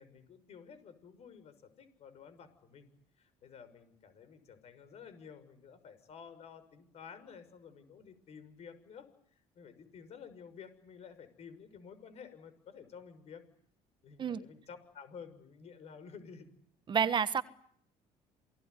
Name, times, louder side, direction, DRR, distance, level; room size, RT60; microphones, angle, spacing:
voice 1, 0.0-2.9 3.2-13.4 14.0-16.5, left 6 dB, 55° left, 6.5 m, -52 dB
voice 2, 16.9-17.4, right 7 dB, 35° right, 1.3 m, -29 dB
28.5 x 19.5 x 9.7 m
cardioid pair, 110°, 13 cm